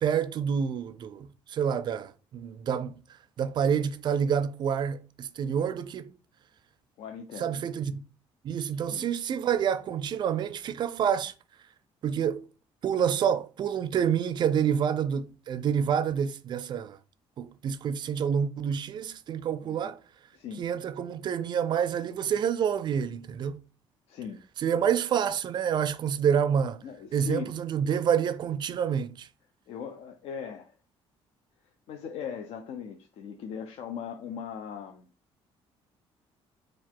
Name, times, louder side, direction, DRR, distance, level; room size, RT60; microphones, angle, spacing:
voice 1, 0.0-3.0 3.4-6.1 7.4-8.1 8.4-11.3 12.0-12.4 12.8-17.0 17.4-20.0 20.6-23.6 24.6-26.8 27.1-29.3, right 8 dB, 45° right, 0.4 m, -28 dB
voice 2, 7.0-7.6 8.9-9.1 19.6-19.9 20.3-20.6 24.1-24.4 26.8-27.6 29.7-30.7 31.9-35.1, left 7 dB, 70° left, 0.5 m, -39 dB
3.8 x 2.4 x 4.6 m
cardioid pair, 130°, 11 cm